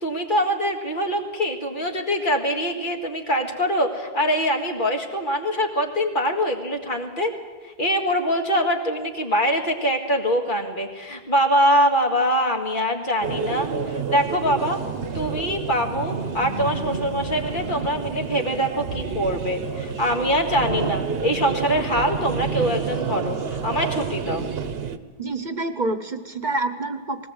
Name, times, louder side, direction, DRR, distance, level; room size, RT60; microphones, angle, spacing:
voice 1, 0.0-7.3 7.6-14.8 15.1-24.5, equal, 50° left, 2 dB, 2.1 m, -23 dB
sound 1, 13.2-25.0, right 5 dB, 70° right, 1.1 m, -29 dB
voice 2, 25.2-27.3, right 2 dB, 50° right, 9 dB, 1.0 m, -27 dB
19.5 x 18.0 x 7.9 m, 1.5 s
omnidirectional pair, 1.1 m